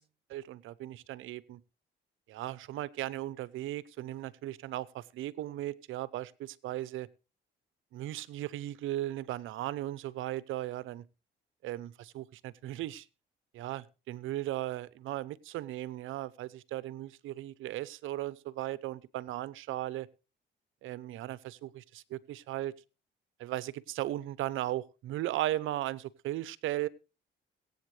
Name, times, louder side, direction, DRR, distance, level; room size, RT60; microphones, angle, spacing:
voice 1, 0.3-1.6 2.3-7.1 7.9-11.0 11.6-13.0 13.5-20.1 20.8-22.7 23.4-26.9, right 14 dB, 85° right, 19 dB, 0.8 m, -37 dB
22.5 x 8.6 x 3.3 m, 0.32 s
cardioid pair, 90°, 20 cm